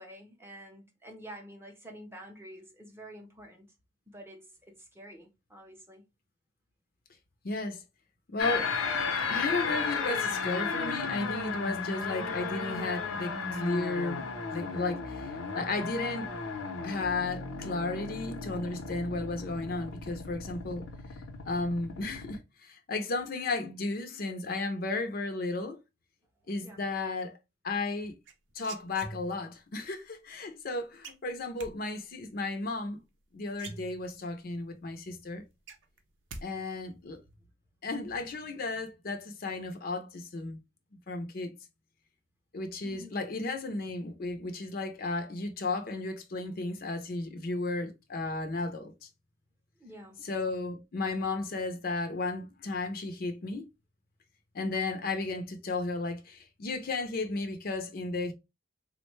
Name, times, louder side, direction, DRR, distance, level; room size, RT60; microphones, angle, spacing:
voice 1, 0.0-3.7 4.1-6.0 26.6-26.9 42.8-43.2 49.8-50.2, equal, 10° right, 0.6 m, -48 dB
voice 2, 7.4-7.8 8.3-8.7 9.3-16.3 16.8-20.9 21.5-25.8 26.5-27.4 27.6-28.2 28.6-33.0 33.3-35.4 36.4-37.2 37.8-40.6 41.1-41.5 42.5-49.1 50.2-53.7 54.5-58.3, left 3 dB, 45° left, 0.5 m, -34 dB
sound 1, 8.4-22.4, left 5 dB, 85° left, 0.7 m, -35 dB
sound 2, 28.3-29.6 31.0-31.7 33.1-33.2 33.5-34.4 34.8-34.9 35.2-36.5 36.7-37.2, right 3 dB, 65° right, 0.6 m, -45 dB
3.6 x 2.1 x 3.0 m
head